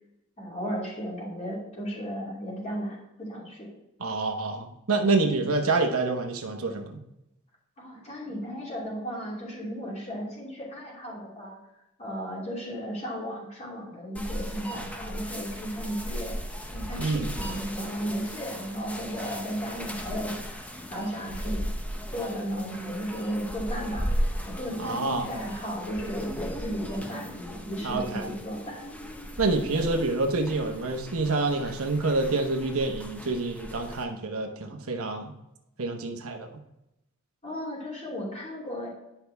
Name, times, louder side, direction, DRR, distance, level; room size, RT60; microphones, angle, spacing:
voice 1, 0.4-3.7 7.8-11.6 12.0-16.4 16.7-21.6 22.1-28.8 37.4-38.9, equal, 30° left, -4 dB, 2.8 m, -35 dB
voice 2, 4.0-7.0 17.0-17.3 24.8-25.3 27.8-28.3 29.4-35.3 35.8-36.5, right 3 dB, 65° right, 3 dB, 1.1 m, -27 dB
sound 1, 14.1-34.0, equal, 5° left, 0.6 m, -36 dB
10.0 x 5.7 x 3.5 m, 0.86 s
head